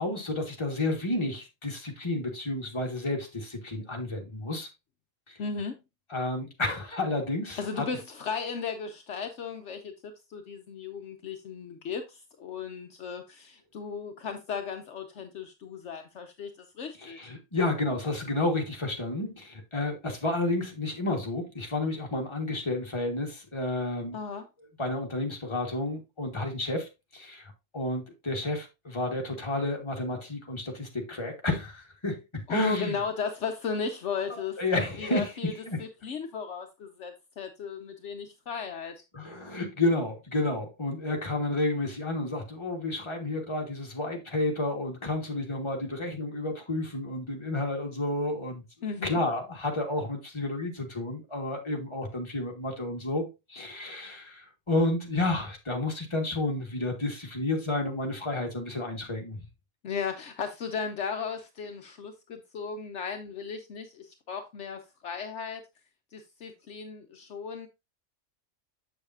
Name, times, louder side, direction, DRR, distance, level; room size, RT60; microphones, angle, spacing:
voice 1, 0.0-4.7 5.3-5.4 6.1-7.8 17.0-24.2 24.8-32.9 34.3-35.8 39.1-48.6 49.0-59.4, left 2 dB, 20° left, 1.6 m, -31 dB
voice 2, 5.4-5.8 7.6-17.3 24.1-24.5 32.5-35.5 35.8-38.9 48.8-49.2 59.8-65.6 66.1-67.7, left 5 dB, 65° left, 1.0 m, -36 dB
7.2 x 6.8 x 2.6 m
omnidirectional pair, 1.3 m